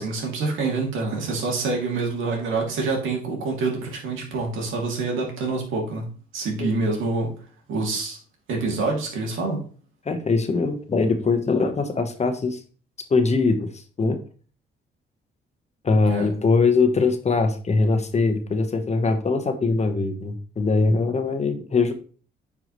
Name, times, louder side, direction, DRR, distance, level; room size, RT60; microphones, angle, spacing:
voice 1, 0.0-7.3 7.7-8.2 8.5-9.6 16.0-16.3, right 3 dB, 80° right, 0 dB, 2.6 m, -26 dB
voice 2, 10.1-12.6 13.1-13.7 14.0-14.2 15.8-21.9, left 3 dB, 35° left, 7 dB, 1.2 m, -22 dB
9.2 x 4.8 x 3.1 m, 0.41 s
cardioid pair, 90°, 20 cm